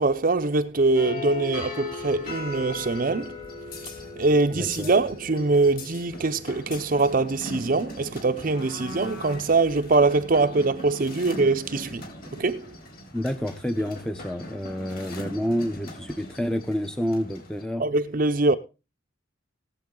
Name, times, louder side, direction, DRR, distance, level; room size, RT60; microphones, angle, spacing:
voice 1, 0.0-3.4 4.2-12.0 12.4-12.7 17.8-18.5, right 3 dB, 45° right, 0.7 m, -23 dB
sound 1, 0.9-17.6, left 2 dB, 50° left, 4.2 m, -39 dB
voice 2, 4.5-4.9 13.1-17.8, equal, 5° left, 0.7 m, -29 dB
18.5 x 8.1 x 3.8 m
head